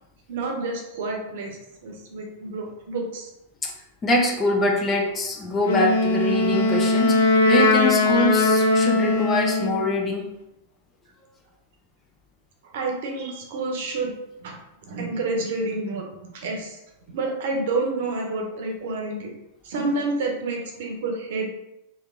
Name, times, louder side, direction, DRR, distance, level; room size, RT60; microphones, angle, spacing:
voice 1, 0.3-3.3 12.7-14.1 14.4-14.5 14.8-16.0 16.3-16.8 17.1-19.3 19.6-21.5, right 3 dB, 65° right, 1 dB, 1.0 m, -29 dB
voice 2, 4.0-10.3, left 1 dB, 25° left, 0 dB, 1.0 m, -24 dB
Wind instrument woodwind instrument, 5.6-9.9, left 2 dB, 75° left, 0.7 m, -20 dB
3.4 x 2.9 x 3.8 m, 0.88 s
hypercardioid pair, 105°, 0 cm